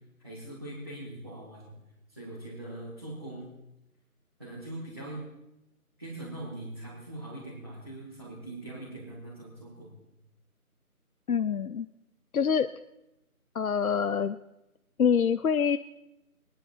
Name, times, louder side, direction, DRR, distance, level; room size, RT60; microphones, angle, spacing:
voice 1, 0.2-1.7 2.1-3.5 4.4-5.2 6.0-9.9, right 1 dB, 15° right, -9 dB, 1.8 m, -41 dB
voice 2, 11.3-11.9 12.3-12.7 13.5-14.4 15.0-15.8, left 7 dB, 70° left, 12 dB, 0.6 m, -25 dB
22.0 x 9.8 x 4.4 m, 0.93 s
figure-of-eight pair, 180°, 45 cm